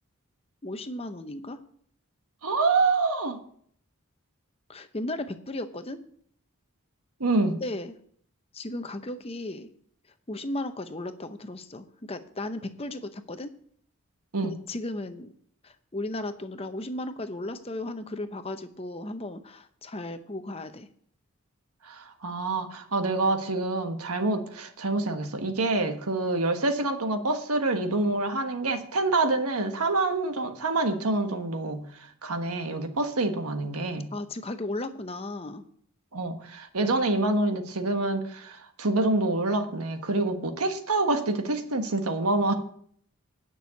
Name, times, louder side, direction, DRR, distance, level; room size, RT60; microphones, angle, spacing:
voice 1, 0.6-1.6 4.7-6.0 7.6-7.9 8.5-9.7 10.3-13.5 14.4-15.3 15.6-20.9 34.1-35.6, left 2 dB, 25° left, 9 dB, 0.7 m, -35 dB
voice 2, 2.4-3.4 7.2-7.6 14.3-14.5 21.8-34.1 36.1-42.5, right 2 dB, 90° right, 6 dB, 1.4 m, -27 dB
9.9 x 6.2 x 8.1 m, 0.62 s
head